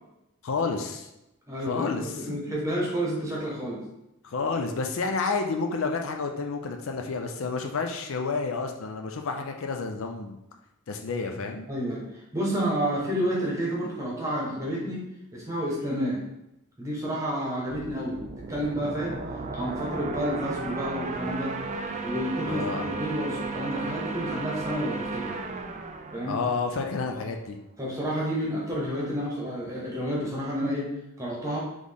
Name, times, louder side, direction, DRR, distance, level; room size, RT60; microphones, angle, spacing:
voice 1, 0.4-1.1 1.6-2.6 4.2-10.4 10.9-11.7 22.5-22.9 26.3-27.6, left 4 dB, 65° left, 4 dB, 0.5 m, -30 dB
voice 2, 1.5-3.8 11.7-12.0 12.3-15.0 15.3-16.2 16.8-19.2 19.5-21.6 22.0-25.4 26.1-26.4 27.1-27.2 27.8-31.6, equal, 15° right, -4 dB, 1.2 m, -30 dB
sound 1, 17.7-27.2, right 3 dB, 35° right, 0.3 m, -35 dB
4.1 x 3.1 x 3.5 m, 0.90 s
head